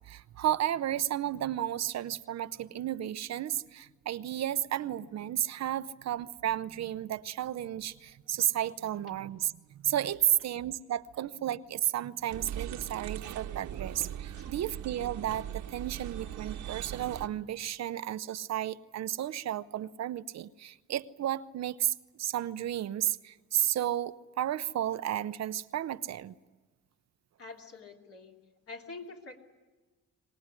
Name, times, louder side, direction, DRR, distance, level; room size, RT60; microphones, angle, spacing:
voice 1, 0.0-26.3, right 11 dB, 60° right, 13 dB, 0.7 m, -33 dB
sound 1, 12.3-17.3, right 10 dB, 75° right, 1.4 m, -40 dB
voice 2, 27.4-28.4 28.7-29.4, left 3 dB, 50° left, 1 dB, 3.2 m, -46 dB
24.0 x 19.0 x 9.7 m, 1.3 s
cardioid pair, 90°, 30 cm